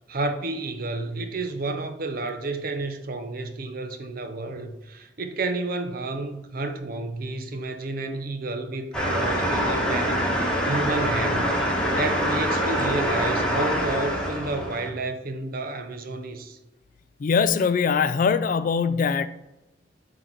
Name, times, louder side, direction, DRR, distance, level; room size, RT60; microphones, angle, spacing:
voice 1, 0.1-16.6, right 2 dB, 50° right, 0.7 m, -31 dB
sound 1, 8.9-14.9, equal, 5° left, 1.2 m, -25 dB
voice 2, 17.2-19.3, left 6 dB, 45° left, 0.3 m, -22 dB
7.6 x 4.0 x 4.5 m
head